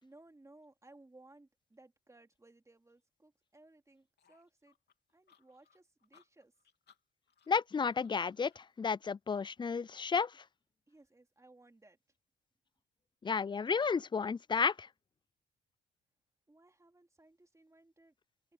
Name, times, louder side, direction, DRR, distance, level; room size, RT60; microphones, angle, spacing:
voice 1, 0.0-4.7 5.1-6.5 10.9-12.0 16.5-18.1, right 2 dB, 15° right, 3.3 m, -61 dB
sound 1, 4.2-8.7, left 7 dB, 55° left, 3.3 m, -69 dB
voice 2, 7.5-10.4 13.2-14.9, left 5 dB, 25° left, 0.4 m, -32 dB
cardioid pair, 90°, 20 cm